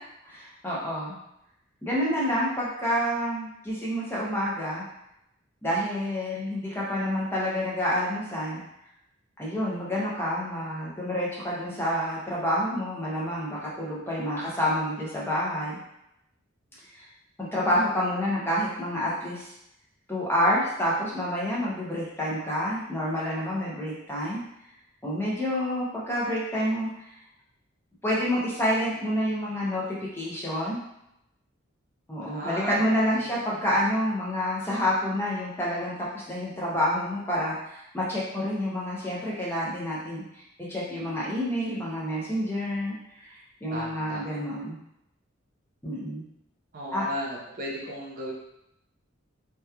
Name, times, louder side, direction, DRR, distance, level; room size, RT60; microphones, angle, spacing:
voice 1, 0.2-1.2 1.8-4.8 5.6-8.6 9.4-15.8 16.9-17.1 17.4-19.5 20.1-24.4 25.0-27.1 28.0-29.8 30.1-30.8 32.1-44.8 45.8-46.2 46.9-47.0, equal, 10° left, -6 dB, 0.5 m, -28 dB
voice 2, 32.2-32.8 33.1-33.6 43.7-44.4 46.7-48.3, equal, 45° right, -4 dB, 0.6 m, -36 dB
2.8 x 2.2 x 2.2 m, 0.81 s
head